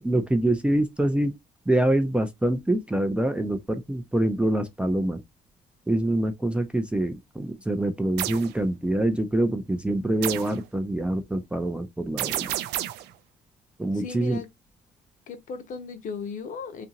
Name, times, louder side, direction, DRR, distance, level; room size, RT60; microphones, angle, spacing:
voice 1, 0.0-1.3 1.7-5.2 5.9-12.5 13.8-14.4, right 1 dB, 5° right, 0.4 m, -25 dB
sound 1, 8.2-8.5 10.2-10.6 12.2-13.1, right 13 dB, 85° right, 0.4 m, -30 dB
voice 2, 13.9-14.5 15.3-16.9, left 5 dB, 50° left, 0.7 m, -36 dB
2.7 x 2.5 x 2.7 m
cardioid pair, 110°, 17 cm